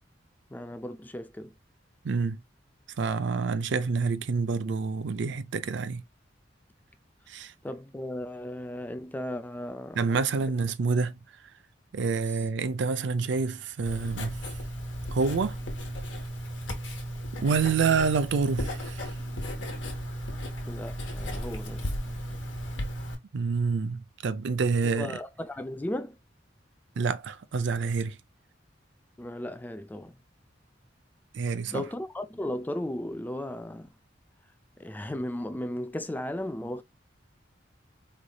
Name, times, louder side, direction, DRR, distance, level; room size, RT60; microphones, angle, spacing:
voice 1, 0.5-1.5 7.6-10.1 20.7-21.9 25.0-26.2 29.2-30.2 31.7-33.9 34.8-36.8, left 1 dB, 10° left, 0.3 m, -35 dB
voice 2, 2.0-2.4 3.0-6.0 7.3-7.5 10.0-11.1 11.9-14.4 15.1-15.6 17.4-19.1 23.3-25.2 27.0-28.2 31.3-31.9, right 5 dB, 65° right, 0.4 m, -27 dB
Writing, 13.9-23.2, equal, 75° left, 1.1 m, -35 dB
3.9 x 3.2 x 2.2 m
head